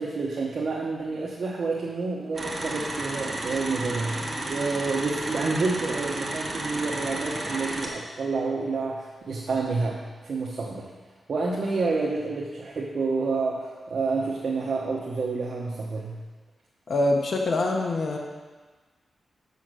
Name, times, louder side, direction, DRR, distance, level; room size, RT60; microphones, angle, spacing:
voice 1, 0.0-10.9 11.3-16.2, right 3 dB, 55° right, -4 dB, 0.9 m, -29 dB
sound 1, 2.3-7.9, right 2 dB, 25° right, 1.3 m, -32 dB
voice 2, 16.9-18.2, left 2 dB, 50° left, 1 dB, 1.0 m, -24 dB
7.0 x 6.2 x 6.1 m, 1.4 s
wide cardioid pair, 150°, 0 cm